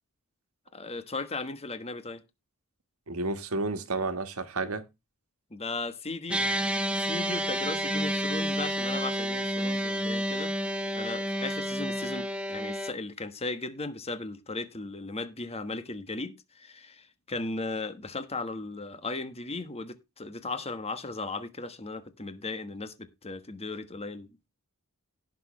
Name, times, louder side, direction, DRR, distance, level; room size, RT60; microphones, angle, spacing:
voice 1, 0.7-2.2 5.5-6.4 7.0-24.5, left 3 dB, 30° left, 1.3 m, -37 dB
voice 2, 3.1-4.8, right 3 dB, 75° right, 1.5 m, -31 dB
sound 1, 6.3-12.9, equal, 5° right, 0.9 m, -30 dB
17.5 x 6.4 x 3.1 m
head